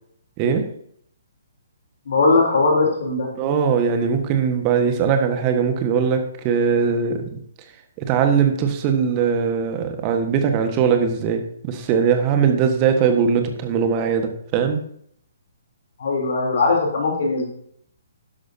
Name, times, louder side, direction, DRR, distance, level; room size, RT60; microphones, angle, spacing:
voice 1, 2.1-3.3 16.0-17.5, left 3 dB, 55° left, -1 dB, 3.5 m, -19 dB
voice 2, 3.4-7.3 8.0-14.8, right 6 dB, 30° right, 6 dB, 1.5 m, -20 dB
12.5 x 11.0 x 2.8 m, 0.67 s
figure-of-eight pair, 130°, 0 cm